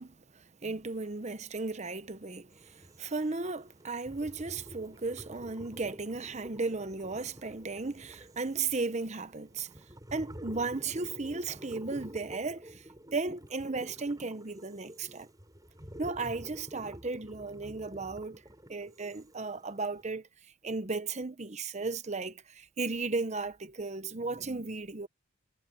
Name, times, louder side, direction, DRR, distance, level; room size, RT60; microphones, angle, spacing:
voice 1, 0.0-9.9 10.1-15.3 16.0-18.4 18.7-20.3 20.6-25.1, right 3 dB, 35° right, 0.9 m, -35 dB
sound 1, 2.5-20.0, equal, 20° right, 6.8 m, -49 dB
head